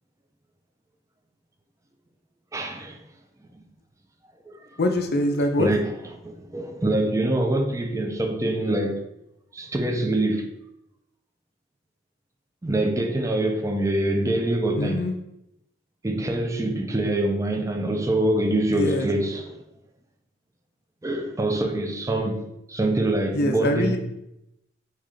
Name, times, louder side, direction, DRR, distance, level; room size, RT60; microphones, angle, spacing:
voice 1, 2.5-3.0 3.5-3.6 4.5-4.8 5.6-5.9 6.2-9.0 9.5-10.5 12.6-15.0 16.0-19.5 21.0-24.0, right 1 dB, 15° right, 0.5 m, -25 dB
voice 2, 4.8-5.7 14.8-15.1 18.7-19.1 23.3-24.0, left 1 dB, 55° left, 0.5 m, -23 dB
4.1 x 3.2 x 3.7 m
head